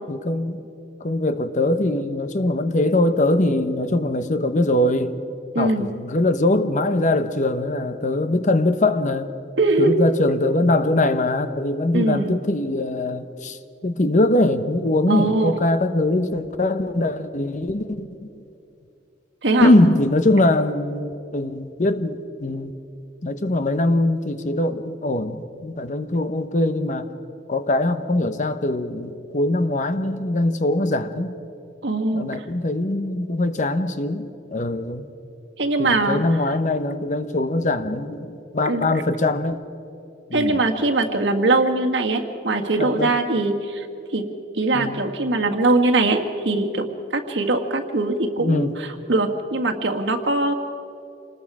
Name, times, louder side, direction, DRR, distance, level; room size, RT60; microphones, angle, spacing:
voice 1, 0.1-0.6 1.0-5.2 5.6-9.3 9.8-18.1 19.6-22.7 23.2-27.1 27.5-31.4 32.1-35.0 35.8-39.6 40.3-40.6 42.8-43.1 44.7-45.0 48.4-48.8, left 2 dB, 45° left, 10 dB, 0.9 m, -22 dB
voice 2, 5.5-5.9 9.6-10.0 11.9-12.3 15.1-15.5 19.4-19.7 31.8-32.4 35.6-36.2 38.6-38.9 40.3-43.9 44.1-44.2 44.5-46.2 46.4-46.9 47.1-50.5, right 2 dB, 75° right, 3 dB, 1.7 m, -21 dB
27.5 x 20.0 x 4.9 m, 2.7 s
head